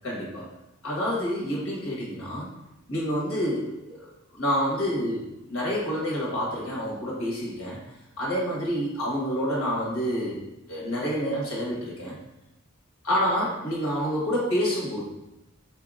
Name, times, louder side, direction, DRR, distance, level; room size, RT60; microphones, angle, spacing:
voice 1, 0.0-0.5 0.8-2.5 2.9-7.8 8.2-10.4 10.7-12.2 13.0-15.1, equal, 75° left, -5 dB, 1.3 m, -28 dB
4.4 x 2.8 x 2.5 m, 0.91 s
head